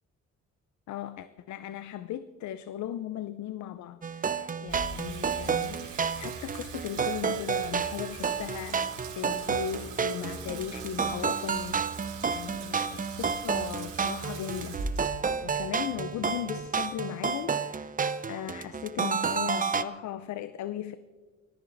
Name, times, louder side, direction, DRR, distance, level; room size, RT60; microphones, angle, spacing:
voice 1, 0.9-14.8 15.4-17.9 18.3-21.0, left 11 dB, 70° left, 0.6 m, -37 dB
sound 1, 4.0-19.8, right 6 dB, 25° right, 0.7 m, -31 dB
Water tap faucet / Sink (filling or washing), 4.7-17.0, right 4 dB, 90° right, 4.3 m, -42 dB
19.5 x 14.0 x 4.0 m
cardioid pair, 90°, 30 cm